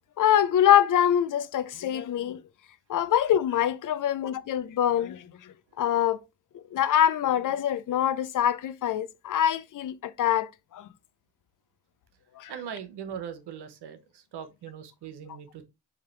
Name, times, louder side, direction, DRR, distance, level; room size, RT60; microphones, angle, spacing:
voice 1, 0.2-2.4 2.9-6.2 6.7-10.9 12.4-12.5, left 10 dB, 50° left, 0.5 m, -24 dB
voice 2, 12.5-15.7, right 8 dB, 70° right, 0.9 m, -40 dB
4.9 x 2.8 x 3.1 m
supercardioid pair, 45°, 41 cm